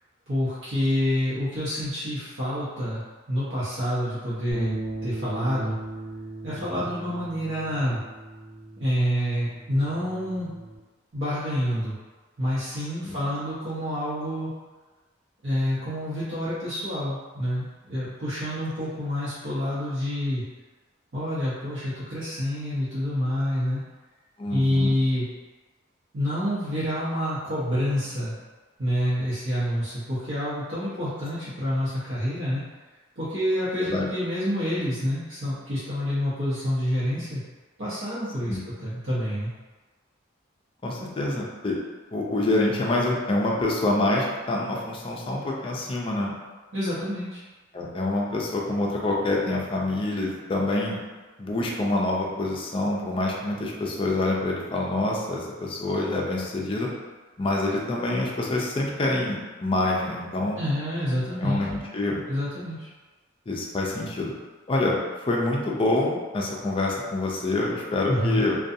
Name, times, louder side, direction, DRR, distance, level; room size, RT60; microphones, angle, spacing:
voice 1, 0.3-3.0 3.3-5.8 6.4-8.0 8.8-10.5 11.1-12.0 12.4-14.5 15.4-20.4 21.1-23.8 24.5-25.3 26.1-28.4 28.8-32.6 33.2-37.4 37.8-39.5 46.7-47.4 60.6-61.6 62.3-62.9 68.1-68.4, equal, 75° right, -12 dB, 0.8 m, -27 dB
sound 1, 4.5-10.8, right 2 dB, 10° right, 0.8 m, -38 dB
voice 2, 24.4-24.9 33.8-34.1 38.5-38.6 40.8-41.8 42.1-46.3 47.7-51.0 51.4-56.9 57.4-60.6 61.4-62.2 63.5-64.3 64.7-65.0 65.3-68.6, left 2 dB, 25° left, -2 dB, 0.4 m, -26 dB
2.5 x 2.2 x 2.6 m, 1.3 s
head